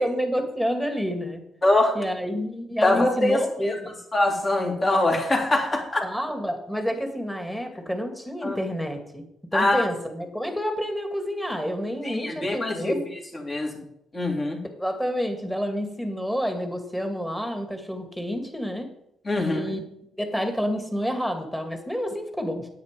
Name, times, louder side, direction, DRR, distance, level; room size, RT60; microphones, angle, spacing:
voice 1, 0.0-1.4 1.9-3.8 6.0-9.2 9.5-13.0 14.8-18.9 19.4-19.9 20.2-22.7, equal, 5° left, 5 dB, 2.3 m, -29 dB
voice 2, 1.6-1.9 2.8-3.8 4.1-6.0 8.4-8.6 9.5-9.8 12.0-13.0 13.3-13.8 14.1-14.6 19.2-19.7, left 2 dB, 30° left, 1 dB, 3.2 m, -23 dB
9.4 x 8.8 x 5.2 m, 0.77 s
cardioid pair, 90°, 0 cm